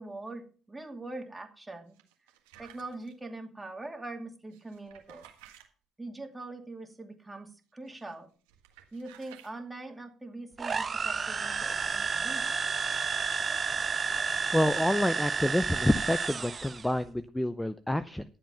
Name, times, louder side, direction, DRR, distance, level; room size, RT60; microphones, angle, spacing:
voice 1, 0.0-2.0 2.6-5.2 6.0-8.3 8.9-12.5, right 2 dB, 15° right, 5 dB, 2.3 m, -42 dB
sound 1, 1.9-3.1 4.5-5.7 7.9-8.1 8.5-9.5, right 11 dB, 85° right, 1.7 m, -55 dB
sound 2, 10.6-16.9, right 5 dB, 35° right, 0.7 m, -31 dB
voice 2, 14.5-18.2, left 1 dB, 10° left, 13 dB, 0.6 m, -28 dB
11.5 x 7.7 x 5.6 m, 0.40 s
hypercardioid pair, 60°, 0 cm